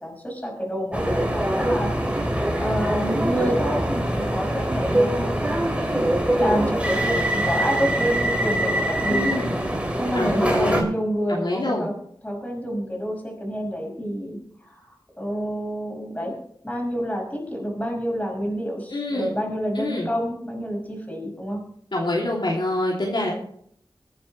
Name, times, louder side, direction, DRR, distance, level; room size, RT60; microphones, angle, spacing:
voice 1, 0.0-9.4 10.0-11.9 12.2-14.8 15.2-16.3 16.6-21.6, equal, 15° left, 0 dB, 5.2 m, -28 dB
sound 1, 0.9-10.8, right 1 dB, 15° right, 2.7 m, -23 dB
voice 2, 9.1-9.5 10.1-10.8 11.3-11.9 18.9-19.3 19.7-20.1 21.9-23.3, left 1 dB, 60° left, -2 dB, 2.9 m, -25 dB
22.5 x 8.9 x 3.3 m, 0.65 s
wide cardioid pair, 65°, 9 cm